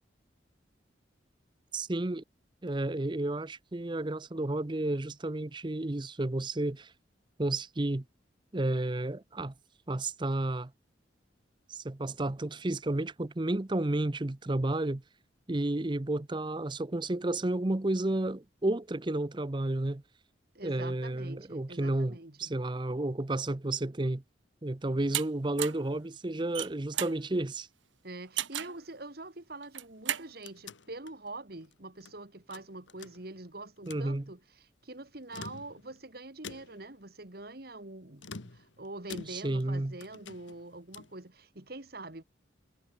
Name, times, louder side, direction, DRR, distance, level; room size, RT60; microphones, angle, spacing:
voice 1, 1.7-2.2 2.6-6.9 7.4-8.0 8.5-9.5 9.9-10.7 11.7-15.0 15.5-20.0 20.6-24.2 24.6-27.7 33.9-34.2 39.3-40.0, right 2 dB, 25° right, 0.6 m, -31 dB
voice 2, 20.5-22.5 28.0-42.2, right 2 dB, 50° right, 2.0 m, -45 dB
sound 1, 25.1-25.3 25.6-25.9 26.4-27.2 28.4-28.8 29.6-30.3, right 12 dB, 80° right, 1.5 m, -33 dB
sound 2, 30.0-32.2 32.5-33.5 33.8-34.1 35.1-36.0 36.4-37.0 38.2-39.7 40.0-41.2, left 4 dB, 75° left, 1.5 m, -48 dB
head